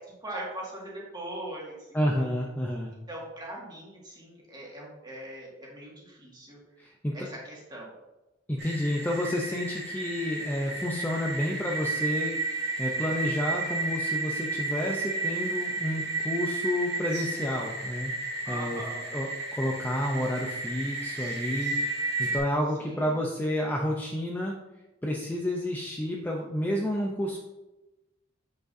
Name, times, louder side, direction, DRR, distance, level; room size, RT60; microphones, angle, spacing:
voice 1, 0.0-2.2 3.1-6.6 7.1-7.9 18.4-19.2 22.8-23.1, right 1 dB, 20° right, -4 dB, 1.9 m, -41 dB
voice 2, 1.9-2.9 6.8-7.2 8.5-18.1 18.5-18.8 19.1-24.6 25.0-27.4, left 1 dB, 10° left, -1 dB, 0.5 m, -30 dB
sound 1, 8.6-22.4, right 3 dB, 55° right, 2.0 m, -32 dB
7.4 x 6.4 x 2.7 m, 1.0 s
head